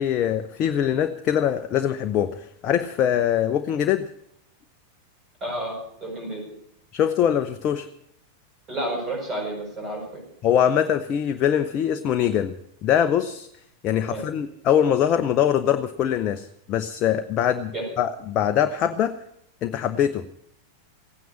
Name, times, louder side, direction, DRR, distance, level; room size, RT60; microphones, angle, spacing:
voice 1, 0.0-4.0 6.9-7.9 10.4-12.5 12.8-13.5 13.8-19.2 19.6-20.3, left 9 dB, 35° left, 8 dB, 0.7 m, -23 dB
voice 2, 5.4-6.4 8.7-10.2 14.1-14.3 17.7-17.8, right 1 dB, 25° right, 0 dB, 7.4 m, -31 dB
16.5 x 9.3 x 8.5 m, 0.75 s
figure-of-eight pair, 90°, 0 cm